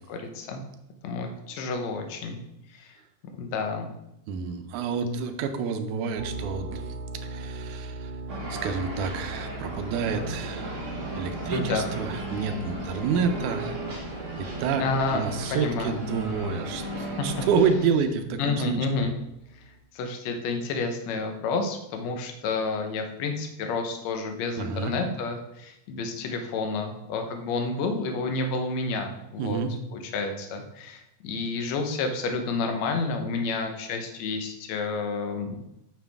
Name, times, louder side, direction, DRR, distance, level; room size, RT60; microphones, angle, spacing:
voice 1, 0.1-0.6 1.0-2.4 2.7-3.0 3.4-3.9 11.5-11.9 14.8-15.2 15.5-16.0 17.0-17.3 18.4-19.1 19.9-29.6 29.9-35.6, left 4 dB, 70° left, 4 dB, 2.1 m, -30 dB
voice 2, 4.3-6.9 7.2-8.1 8.5-10.8 11.1-13.8 14.4-14.8 15.1-19.1 24.6-24.9 29.4-29.7, right 5 dB, 85° right, 7 dB, 2.2 m, -29 dB
sound 1, 6.2-19.8, right 2 dB, 65° right, 1.5 m, -41 dB
sound 2, 8.3-17.8, right 2 dB, 30° right, 1.5 m, -35 dB
9.3 x 5.9 x 3.5 m, 0.84 s
omnidirectional pair, 3.4 m